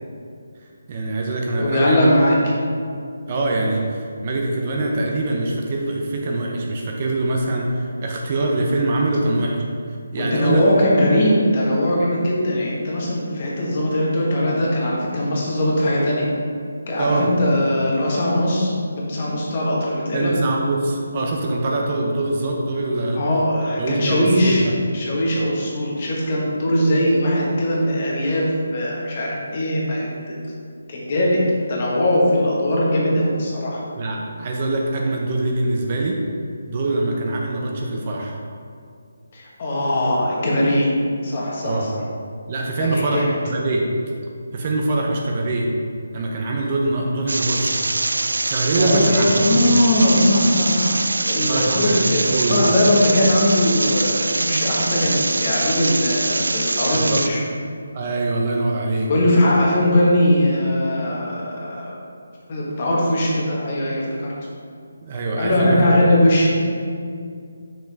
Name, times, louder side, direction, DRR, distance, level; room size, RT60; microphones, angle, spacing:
voice 1, 0.9-2.1 3.3-9.6 10.1-10.6 16.9-17.3 20.1-23.2 23.8-24.7 33.9-36.2 36.7-38.4 41.6-41.9 42.5-43.9 44.5-45.7 46.1-47.8 48.5-49.8 51.5-52.6 56.9-57.3 57.9-59.1 65.0-65.9, right 2 dB, 35° right, -1 dB, 0.6 m, -23 dB
voice 2, 1.6-2.5 10.2-16.3 16.9-20.3 23.1-24.6 24.9-30.3 30.9-33.8 39.3-40.9 41.2-42.0 42.8-43.4 48.8-57.4 59.1-61.9 62.5-64.3 65.4-66.6, left 1 dB, 35° left, -4 dB, 1.5 m, -20 dB
sound 1, 47.3-57.3, right 2 dB, 90° right, 0.3 m, -23 dB
5.9 x 5.2 x 3.5 m, 2.3 s
hypercardioid pair, 165°, 0 cm